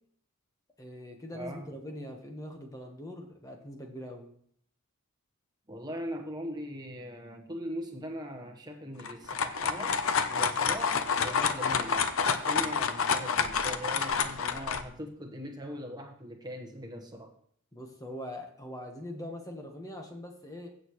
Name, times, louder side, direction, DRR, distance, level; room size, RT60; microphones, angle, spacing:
voice 1, 0.8-4.3 17.7-20.8, left 1 dB, 15° left, 3 dB, 1.2 m, -42 dB
voice 2, 1.3-1.7 5.7-17.3, equal, 20° right, 3 dB, 1.2 m, -41 dB
sound 1, 9.0-14.8, left 6 dB, 65° left, 0.7 m, -28 dB
sound 2, 10.3-14.4, right 2 dB, 5° right, 3.4 m, -55 dB
15.5 x 6.5 x 3.1 m, 0.63 s
head